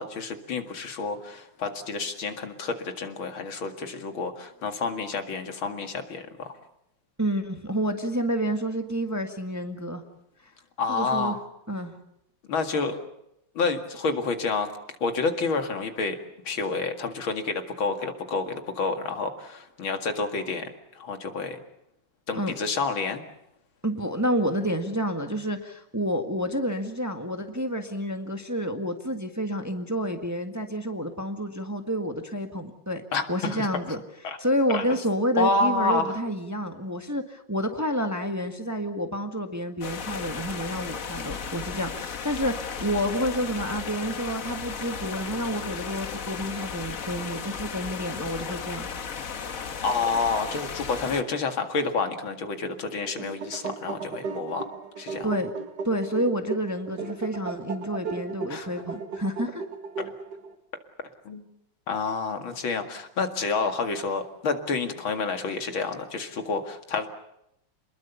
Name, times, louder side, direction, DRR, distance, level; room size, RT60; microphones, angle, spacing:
voice 1, 0.0-6.5 10.8-11.4 12.5-13.1 13.5-14.7 15.0-16.2 16.4-21.6 22.3-23.2 33.1-33.7 34.2-34.4 34.7-34.8 35.4-36.2 49.8-54.7 55.0-55.3 58.5-58.7 60.0-60.1 61.2-61.4 61.9-67.1, left 4 dB, 80° left, 6 dB, 2.9 m, -29 dB
voice 2, 7.2-10.0 10.9-11.4 11.7-11.9 22.3-22.5 23.8-33.0 33.3-34.0 34.4-48.9 55.2-55.5 55.8-59.6, equal, 10° right, 6 dB, 1.5 m, -29 dB
sound 1, 39.8-51.2, left 6 dB, 45° left, 1.5 m, -35 dB
sound 2, 52.9-60.5, right 4 dB, 55° right, 2.3 m, -36 dB
28.0 x 21.0 x 7.0 m, 0.80 s
omnidirectional pair, 2.2 m